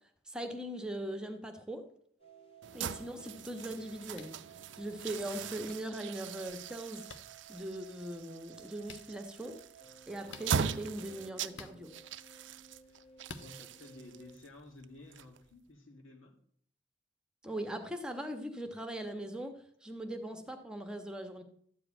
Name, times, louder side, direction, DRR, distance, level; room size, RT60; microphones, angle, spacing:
voice 1, 0.3-1.8 2.7-4.3 4.8-7.1 7.5-9.6 10.1-11.9 17.4-19.5 19.8-21.4, right 1 dB, 5° right, 5 dB, 1.1 m, -40 dB
sound 1, 2.2-14.4, right 7 dB, 30° left, 1.9 m, -57 dB
sound 2, 2.6-15.7, right 6 dB, 65° right, 0.5 m, -41 dB
sound 3, 4.1-4.4 5.7-5.8 7.1-7.2 8.8-9.0 10.3-10.5 11.5-11.8 13.2-13.5, left 4 dB, 65° left, 1.0 m, -48 dB
voice 2, 13.4-16.3, left 2 dB, 90° left, 2 dB, 2.6 m, -53 dB
13.0 x 4.9 x 8.8 m, 0.63 s
head